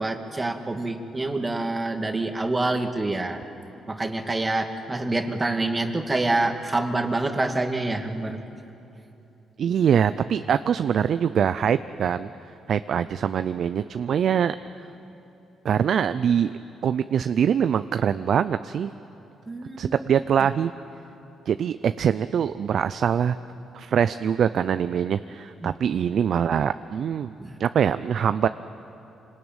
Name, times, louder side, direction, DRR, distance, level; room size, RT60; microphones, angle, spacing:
voice 1, 0.0-3.4 3.9-8.4 19.5-20.0 25.6-25.7 27.4-27.5, right 2 dB, 20° right, 5 dB, 2.0 m, -26 dB
voice 2, 9.6-12.3 12.7-14.6 15.6-16.5 16.8-18.9 19.8-20.7 21.5-23.4 23.7-27.3 27.6-28.5, right 8 dB, 60° right, 12 dB, 0.5 m, -23 dB
26.0 x 19.5 x 9.0 m, 2.8 s
cardioid pair, 80°, 0 cm